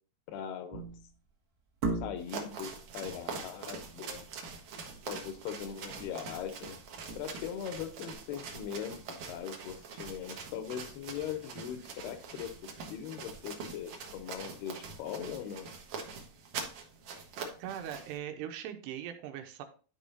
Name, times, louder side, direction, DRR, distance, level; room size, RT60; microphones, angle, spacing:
voice 1, 0.3-0.8 2.0-4.2 5.1-6.8 7.2-12.5 12.9-15.7, left 9 dB, 80° left, 8 dB, 2.6 m, -40 dB
sound 1, 0.7-1.2 1.8-2.5 4.9-5.1 5.4-5.5 6.0-6.3 6.8-7.7 8.1-8.2, right 3 dB, 45° right, 1.6 m, -37 dB
sound 2, 2.2-18.2, right 5 dB, 65° right, 1.9 m, -44 dB
voice 2, 17.6-19.6, right 10 dB, 85° right, 6 dB, 2.9 m, -40 dB
11.0 x 5.1 x 2.7 m, 0.38 s
omnidirectional pair, 4.9 m